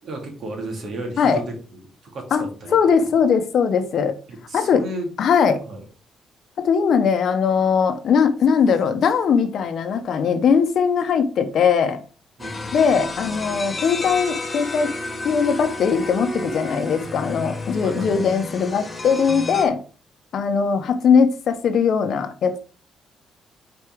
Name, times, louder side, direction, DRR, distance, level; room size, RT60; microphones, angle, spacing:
voice 1, 0.0-1.5 2.1-3.1 4.3-5.1 5.7-5.8 12.4-12.8 17.8-18.3, right 2 dB, 60° right, 2.5 m, -33 dB
voice 2, 2.7-4.2 4.5-4.8 5.2-5.6 6.6-12.0 12.7-14.9 15.2-19.8 20.3-22.6, left 6 dB, 65° left, 0.9 m, -20 dB
sound 1, 12.4-19.7, left 2 dB, 25° left, 1.1 m, -31 dB
4.9 x 4.4 x 4.6 m
cardioid pair, 90°, 0 cm